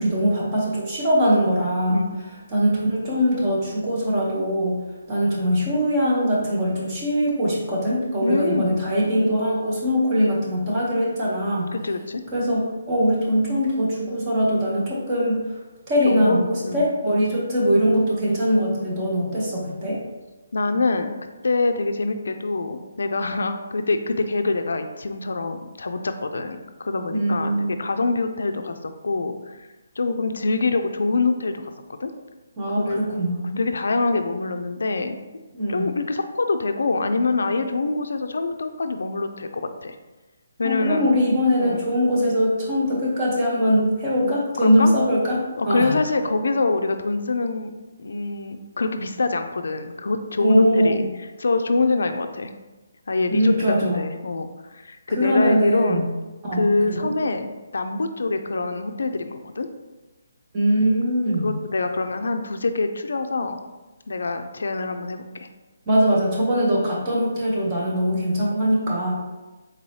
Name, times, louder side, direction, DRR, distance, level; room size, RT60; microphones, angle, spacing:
voice 1, 0.0-2.1 2.5-4.8 5.1-11.7 12.3-15.6 15.9-20.0 27.1-27.7 32.6-33.6 35.5-35.9 40.6-46.0 50.4-51.1 53.3-54.0 55.1-56.1 56.4-57.1 60.5-61.5 65.9-69.1, equal, 15° right, -5 dB, 0.7 m, -22 dB
voice 2, 8.2-8.7 10.1-10.4 11.7-12.2 16.0-16.9 20.5-21.2 21.4-29.6 30.0-31.7 32.0-32.1 32.8-33.0 33.6-35.2 35.7-39.9 40.6-41.1 41.6-41.8 44.2-44.9 45.6-47.7 48.0-51.0 51.4-52.5 53.1-53.5 53.8-56.1 56.5-59.7 61.4-63.6 64.1-65.5, left 3 dB, 75° left, 7 dB, 0.3 m, -25 dB
3.9 x 2.7 x 3.1 m, 1.1 s
hypercardioid pair, 175°, 0 cm